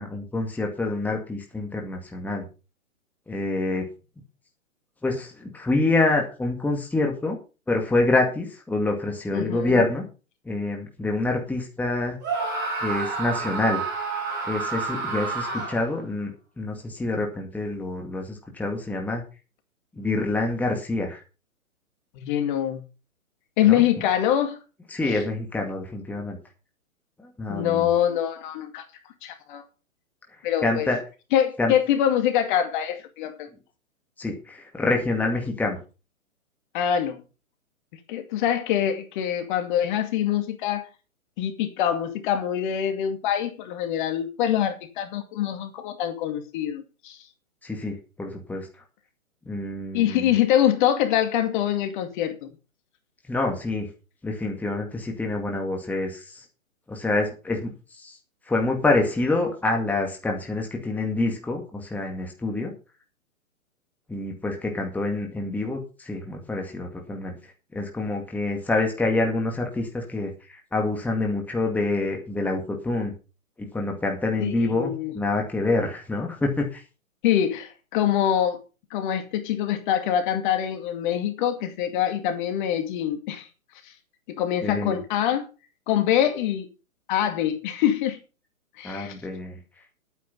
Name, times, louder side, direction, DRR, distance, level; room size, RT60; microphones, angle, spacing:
voice 1, 0.0-2.4 3.3-3.9 5.0-7.4 7.7-10.0 10.5-12.2 12.8-13.8 14.5-16.3 16.6-19.2 20.0-21.2 23.7-23.8 24.9-26.4 27.4-27.9 30.6-31.0 31.6-31.7 34.2-35.8 47.6-48.7 49.5-50.3 53.3-53.9 54.2-56.4 56.9-57.7 58.0-58.2 58.5-62.7 64.1-67.4 67.7-73.1 73.7-76.8 84.6-85.0 88.8-89.6, left 2 dB, 5° left, 2.1 m, -26 dB
voice 2, 9.3-9.8 22.2-22.8 23.6-24.6 25.1-25.2 27.5-28.8 29.2-29.6 30.4-30.9 31.3-33.5 36.7-37.2 38.1-40.9 41.4-47.2 49.9-52.5 74.4-75.1 77.2-78.6 78.9-83.5 84.3-85.5 85.9-86.7 87.1-88.2 88.8-89.2, left 10 dB, 35° left, 2.3 m, -24 dB
Screaming, 12.2-16.0, right 4 dB, 25° right, 6.4 m, -29 dB
11.0 x 9.4 x 5.6 m
hypercardioid pair, 135°, 41 cm